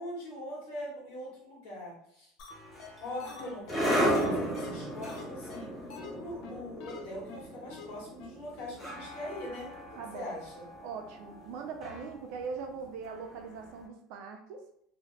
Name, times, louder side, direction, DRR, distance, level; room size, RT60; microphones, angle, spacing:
voice 1, 0.0-2.3 3.0-5.7 6.1-10.7, left 1 dB, 90° left, -4 dB, 1.4 m, -42 dB
sound 1, 2.4-2.5 2.8-2.9 3.2-5.2 5.5-5.6 5.9-6.1 6.4-6.5 6.8-7.0 7.3-7.4 7.7-7.9 8.2-8.3 8.6-8.7, left 4 dB, 50° left, 0.5 m, -45 dB
sound 2, 2.5-13.6, equal, ahead, 0.5 m, -35 dB
voice 2, 9.9-10.3 10.8-14.6, right 5 dB, 55° right, 4 dB, 0.4 m, -41 dB
2.8 x 2.1 x 3.1 m, 0.71 s
cardioid pair, 175°, 0 cm